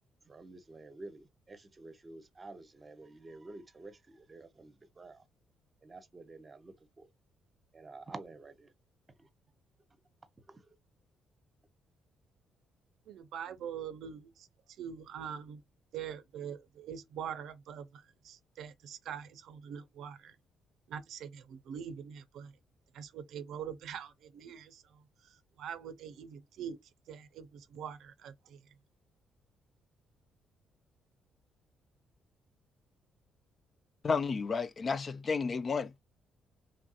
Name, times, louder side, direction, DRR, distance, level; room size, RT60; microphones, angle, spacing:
voice 1, 0.3-5.2 5.8-7.1 7.7-8.7 10.5-10.6, right 2 dB, 30° right, 0.7 m, -50 dB
voice 2, 13.1-14.5 14.8-15.6 15.9-20.4 20.9-22.5 22.9-26.8 27.1-28.8, right 8 dB, 75° right, 0.5 m, -44 dB
voice 3, 34.0-36.0, left 5 dB, 40° left, 0.3 m, -32 dB
3.1 x 2.7 x 2.3 m
cardioid pair, 80°, 0 cm